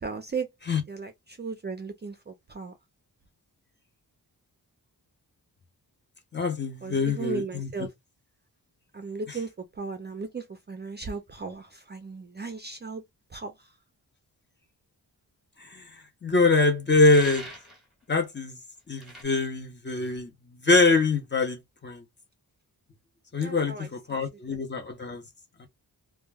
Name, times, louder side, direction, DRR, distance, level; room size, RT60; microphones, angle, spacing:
voice 1, 0.0-0.5 0.9-2.7 6.8-7.9 8.9-13.0 13.3-13.7 23.4-23.9, right 4 dB, 30° right, 0.4 m, -36 dB
voice 2, 6.3-7.7 15.6-15.8 16.2-17.5 18.1-18.6 18.9-20.3 20.6-22.0 23.3-25.2 25.6-25.7, left 3 dB, 30° left, 0.6 m, -24 dB
sound 1, 17.0-17.8 19.0-19.2, right 1 dB, ahead, 1.0 m, -42 dB
2.2 x 2.1 x 3.3 m
wide cardioid pair, 135°, 38 cm